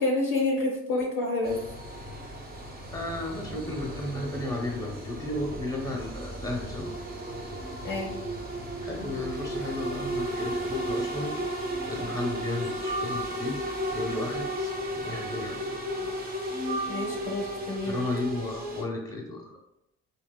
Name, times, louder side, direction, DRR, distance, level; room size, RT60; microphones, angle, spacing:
voice 1, 0.0-1.6 7.8-8.2 16.9-18.0, left 2 dB, 70° left, -1 dB, 0.5 m, -28 dB
sound 1, 1.4-18.8, equal, 25° right, 0.7 m, -34 dB
voice 2, 2.9-6.9 8.8-11.4 11.9-13.6 13.9-15.6 17.9-19.5, left 2 dB, 10° left, 0 dB, 0.8 m, -34 dB
sound 2, 12.7-13.5 14.2-15.1 16.1-17.6, right 2 dB, 70° right, 0.6 m, -38 dB
2.8 x 2.2 x 2.2 m, 0.87 s
hypercardioid pair, 55°, 34 cm